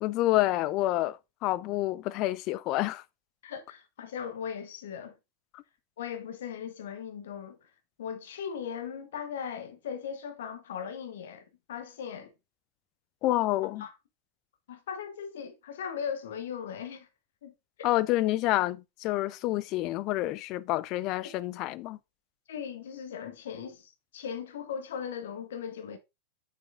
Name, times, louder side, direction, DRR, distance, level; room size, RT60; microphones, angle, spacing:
voice 1, 0.0-3.0 13.2-13.9 17.8-22.0, left 16 dB, 40° left, 0.4 m, -28 dB
voice 2, 3.4-5.2 6.0-7.6 8.0-12.3 13.8-13.9 14.7-17.1 17.4-17.5 22.5-26.0, left 7 dB, 60° left, 1.1 m, -38 dB
7.0 x 5.9 x 2.5 m
figure-of-eight pair, 90°, 0 cm